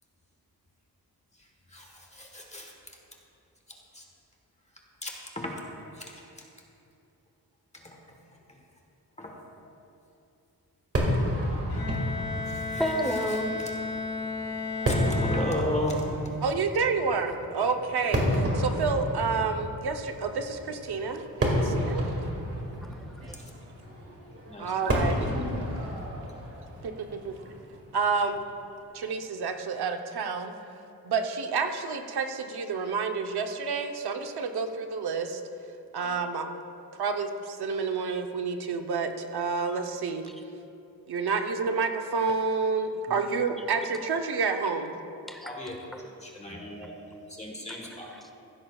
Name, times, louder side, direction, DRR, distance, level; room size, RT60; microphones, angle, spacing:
voice 1, 1.7-2.7 3.9-4.0 5.0-5.6 6.0-6.1 7.8-8.0 9.2-9.3 12.5-12.8 14.9-16.1 24.5-25.6 36.0-36.1 45.4-45.8 46.2-46.9 47.3-48.1, left 1 dB, 15° left, 0 dB, 1.3 m, -35 dB
Fireworks, 10.9-28.3, equal, 35° right, 2.0 m, -31 dB
Bowed string instrument, 11.7-16.1, left 3 dB, 70° left, 1.7 m, -34 dB
voice 2, 12.8-13.6 22.8-23.4 45.3-45.6 45.9-46.0 47.7-47.8 48.1-48.3, equal, ahead, 4 dB, 0.8 m, -32 dB
voice 3, 16.4-22.0 24.6-25.2 26.8-27.4 27.9-28.4 28.9-30.5 31.0-35.4 35.9-36.5 37.0-40.2 41.1-44.9, right 5 dB, 80° right, 5 dB, 0.9 m, -29 dB
15.5 x 13.0 x 2.4 m, 2.7 s
wide cardioid pair, 135°, 38 cm